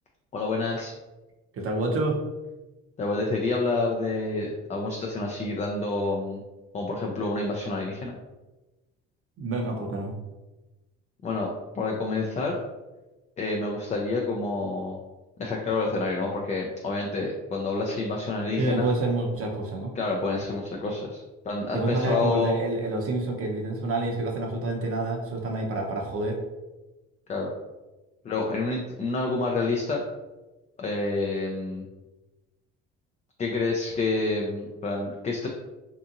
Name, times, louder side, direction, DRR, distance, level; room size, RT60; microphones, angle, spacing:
voice 1, 0.3-0.9 3.0-6.4 6.7-8.1 11.2-12.6 13.4-15.0 15.4-18.9 20.0-22.6 27.3-27.5 28.2-30.0 30.8-31.9 33.4-35.5, left 3 dB, 25° left, 0 dB, 0.4 m, -28 dB
voice 2, 1.5-2.2 9.4-10.1 18.6-19.9 21.7-26.4, right 2 dB, 50° right, 1 dB, 0.7 m, -28 dB
2.8 x 2.5 x 2.5 m, 1.1 s
supercardioid pair, 80°, 30 cm